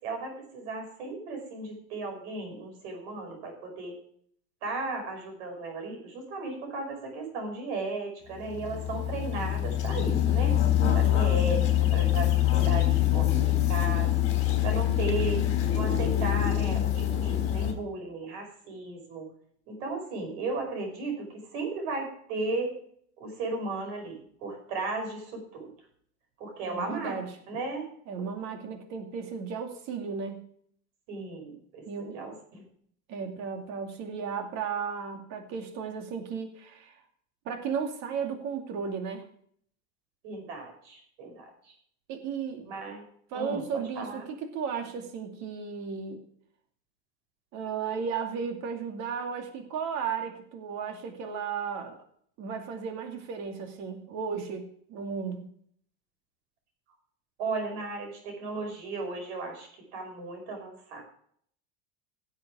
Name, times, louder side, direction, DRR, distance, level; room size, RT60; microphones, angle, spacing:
voice 1, 0.0-4.0 4.6-10.6 10.9-14.1 14.6-15.5 15.7-19.3 19.7-22.8 23.2-25.7 26.4-27.2 27.5-27.9 31.1-32.6 40.2-41.7 42.6-43.0 43.3-44.3 57.4-61.0, right 3 dB, 70° right, 3 dB, 5.6 m, -35 dB
sound 1, 8.3-17.7, left 12 dB, 40° left, 3.9 m, -25 dB
voice 2, 10.8-11.3 26.7-27.3 28.1-30.4 31.9-32.3 33.1-37.0 37.5-39.3 42.1-42.8 43.3-46.2 47.5-52.0 52.4-55.5, right 6 dB, 50° right, 4 dB, 2.5 m, -35 dB
16.5 x 7.6 x 4.9 m, 0.63 s
supercardioid pair, 140°, 34 cm